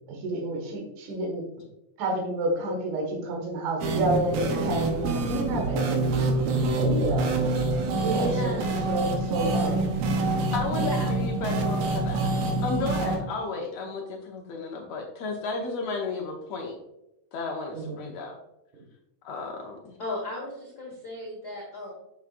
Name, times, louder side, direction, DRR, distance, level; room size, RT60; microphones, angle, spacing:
voice 1, 0.1-1.4 2.0-6.0 6.8-7.3 8.0-8.6 8.9-9.9 17.7-17.9, right 2 dB, 65° right, 0 dB, 2.9 m, -29 dB
sound 1, 3.8-13.2, right 2 dB, 80° right, 2.6 m, -26 dB
voice 2, 7.9-8.9 10.7-11.1 20.0-21.9, left 1 dB, 45° left, -4 dB, 1.4 m, -34 dB
voice 3, 10.5-12.3 12.6-16.8 17.3-18.3 19.2-20.0, left 4 dB, 75° left, 0 dB, 1.5 m, -33 dB
7.2 x 6.9 x 2.5 m, 0.87 s
omnidirectional pair, 4.0 m